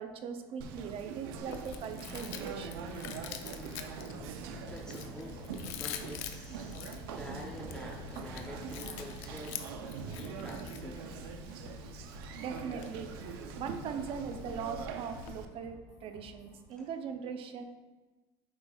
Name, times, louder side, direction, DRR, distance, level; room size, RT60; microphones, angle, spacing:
voice 1, 0.0-2.7 12.3-13.1 13.6-17.6, right 6 dB, 50° right, 7 dB, 0.6 m, -40 dB
sound 1, 0.6-16.6, left 2 dB, 60° left, 1.9 m, -54 dB
Conversation, 0.6-15.5, right 6 dB, 90° right, 0.5 m, -43 dB
Chewing mastication, 1.4-15.4, left 8 dB, 75° left, 0.5 m, -46 dB
voice 2, 4.7-6.8 7.1-9.6 10.1-11.0 16.8-16.9, left 1 dB, 5° left, -2 dB, 0.6 m, -46 dB
8.2 x 5.2 x 2.3 m, 1.2 s
supercardioid pair, 115°, 12 cm